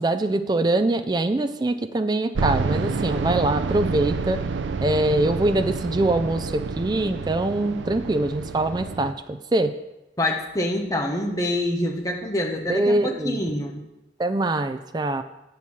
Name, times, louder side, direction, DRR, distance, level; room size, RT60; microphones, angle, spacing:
voice 1, 0.0-4.4 4.8-9.7 12.7-13.4 14.2-15.2, right 2 dB, 20° right, 9 dB, 0.3 m, -23 dB
sound 1, 2.3-9.1, right 4 dB, 85° right, 0.5 m, -28 dB
voice 2, 10.2-13.8, left 1 dB, 20° left, 2 dB, 1.0 m, -26 dB
8.1 x 4.5 x 7.1 m, 0.94 s
head